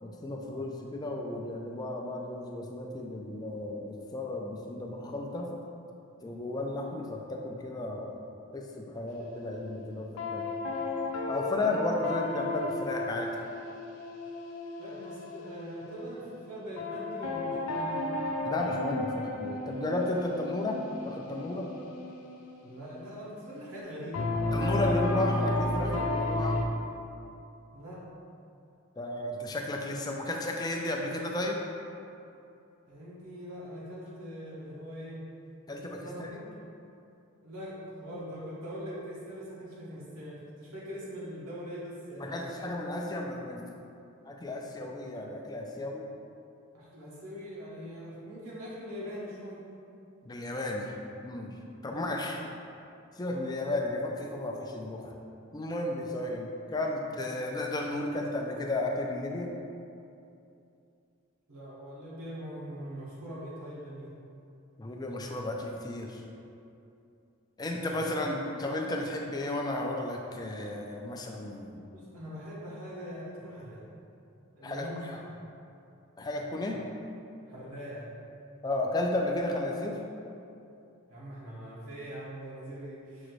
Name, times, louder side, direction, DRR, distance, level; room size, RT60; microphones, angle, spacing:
voice 1, 0.0-5.5 6.2-8.1 8.5-10.5 11.3-13.3 18.4-21.7 24.5-26.6 29.0-31.6 35.7-36.3 42.2-43.7 44.3-46.0 50.3-50.9 51.2-51.5 51.8-52.4 53.2-55.1 55.5-59.5 64.8-66.2 67.6-71.8 74.6-74.9 76.2-76.8 78.6-80.0, left 2 dB, 20° left, 0 dB, 0.3 m, -33 dB
sound 1, 9.1-9.8 10.2-16.4 16.8-23.3 24.1-26.7, left 2 dB, 80° left, 0.4 m, -33 dB
voice 2, 14.8-18.1 22.6-25.0 27.7-28.0 32.9-35.3 36.0-36.4 37.4-42.5 46.7-49.6 51.8-52.1 61.5-64.1 67.9-68.4 71.9-73.8 74.5-75.4 76.7-76.8 77.5-78.1 81.1-83.3, equal, 85° right, -7 dB, 0.9 m, -42 dB
6.2 x 2.5 x 3.1 m, 2.6 s
head